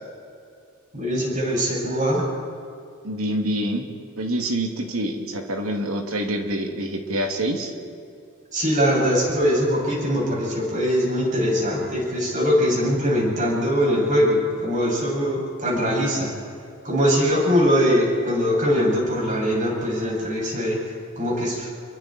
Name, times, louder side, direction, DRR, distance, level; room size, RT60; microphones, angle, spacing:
voice 1, 0.9-2.2 8.5-16.3 16.8-20.8 21.2-21.7, equal, 40° right, -3 dB, 7.3 m, -22 dB
voice 2, 3.0-3.9 4.2-7.7, right 1 dB, 80° right, 2 dB, 2.7 m, -26 dB
28.5 x 23.0 x 4.5 m, 2.5 s
head